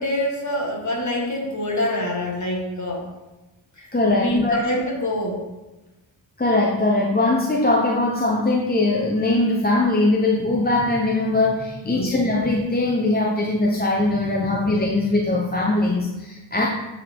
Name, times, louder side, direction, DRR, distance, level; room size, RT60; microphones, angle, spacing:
voice 1, 0.0-3.1 3.8-5.4 11.8-12.1 14.6-14.7, left 1 dB, 40° left, -1 dB, 1.8 m, -26 dB
voice 2, 3.9-4.6 6.4-16.7, left 2 dB, 20° left, -1 dB, 0.8 m, -21 dB
7.9 x 3.9 x 4.5 m, 1.1 s
cardioid pair, 65°, 46 cm